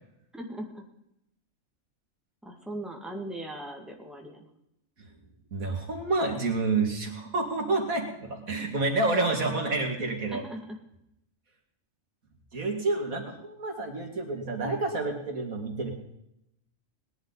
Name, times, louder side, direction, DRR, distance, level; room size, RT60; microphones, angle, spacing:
voice 1, 0.3-0.8 2.4-4.5 10.3-10.8, right 1 dB, ahead, 1 dB, 2.0 m, -39 dB
voice 2, 5.5-10.4 12.5-15.9, right 3 dB, 90° right, 2 dB, 2.8 m, -29 dB
19.0 x 11.0 x 4.0 m, 0.80 s
omnidirectional pair, 1.4 m